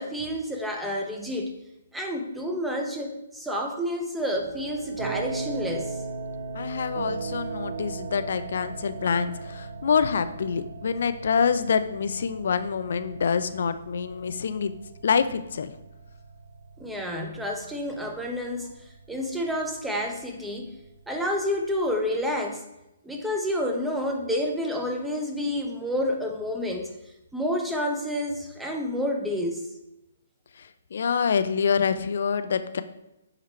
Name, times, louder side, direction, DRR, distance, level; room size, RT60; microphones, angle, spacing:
voice 1, 0.0-1.5 1.9-6.0 16.8-18.7 19.1-20.7 21.1-22.6 23.0-26.9 27.3-29.6, left 1 dB, 5° right, 2 dB, 0.7 m, -29 dB
sound 1, 4.3-22.3, right 4 dB, 60° right, 1.0 m, -38 dB
voice 2, 6.5-14.7 15.0-15.7 30.9-32.8, left 6 dB, 55° left, 11 dB, 0.4 m, -26 dB
7.6 x 2.9 x 4.4 m, 0.90 s
figure-of-eight pair, 130°, 0 cm